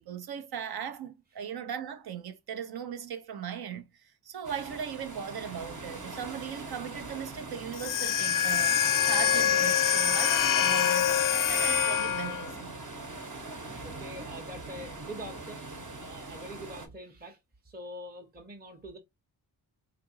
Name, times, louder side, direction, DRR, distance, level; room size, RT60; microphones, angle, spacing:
voice 1, 0.0-12.8 16.2-16.3, right 8 dB, 60° right, 0.7 m, -38 dB
sound 1, 4.4-16.9, right 2 dB, 45° right, 1.1 m, -42 dB
sound 2, 7.7-12.5, left 9 dB, 50° left, 0.5 m, -25 dB
voice 2, 13.8-15.6 16.0-17.4 17.6-19.0, right 1 dB, 20° right, 0.9 m, -44 dB
3.7 x 2.5 x 2.7 m
supercardioid pair, 45°, 42 cm